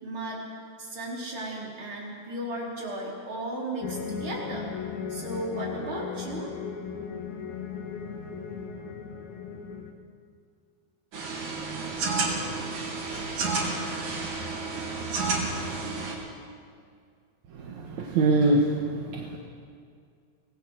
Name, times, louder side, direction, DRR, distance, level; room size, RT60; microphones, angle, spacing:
voice 1, 0.0-0.4 0.8-4.7 5.1-6.5, right 1 dB, 40° right, -3 dB, 5.1 m, -35 dB
sound 1, 3.8-9.9, left 6 dB, 75° left, 3.1 m, -36 dB
sound 2, 11.1-16.2, right 3 dB, 90° right, 4.9 m, -30 dB
voice 2, 17.5-19.4, right 2 dB, 70° right, -1 dB, 2.9 m, -24 dB
25.5 x 19.0 x 6.5 m, 2.2 s
omnidirectional pair, 3.4 m